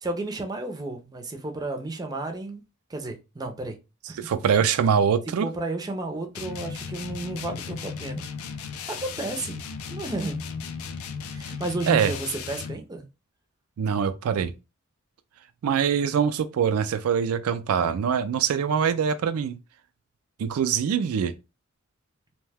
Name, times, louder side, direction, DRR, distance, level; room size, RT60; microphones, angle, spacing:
voice 1, 0.0-2.6 2.9-3.8 4.1-4.2 5.4-8.2 8.9-9.6 9.9-10.4 11.3-13.0, right 2 dB, 20° right, 0.5 m, -32 dB
voice 2, 4.2-5.5 11.9-12.1 13.8-14.5 15.6-19.6 20.4-21.3, right 7 dB, 85° right, 0.3 m, -23 dB
sound 1, 6.3-12.8, left 6 dB, 75° left, 0.4 m, -36 dB
2.7 x 2.1 x 3.3 m
head